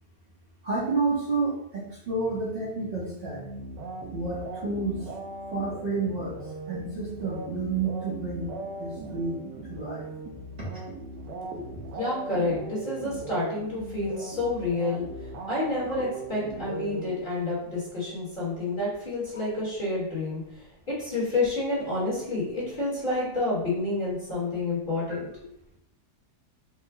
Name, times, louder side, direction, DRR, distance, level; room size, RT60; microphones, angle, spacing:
voice 1, 0.6-3.4 4.1-5.0 5.5-6.4 6.7-8.5 8.8-10.1, right 3 dB, 40° right, -8 dB, 1.0 m, -30 dB
sound 1, 3.3-17.7, right 2 dB, 85° right, 1.3 m, -39 dB
voice 2, 11.9-15.0 15.5-25.3, left 2 dB, 30° left, -7 dB, 1.3 m, -29 dB
4.7 x 2.2 x 3.4 m, 0.76 s
omnidirectional pair, 1.8 m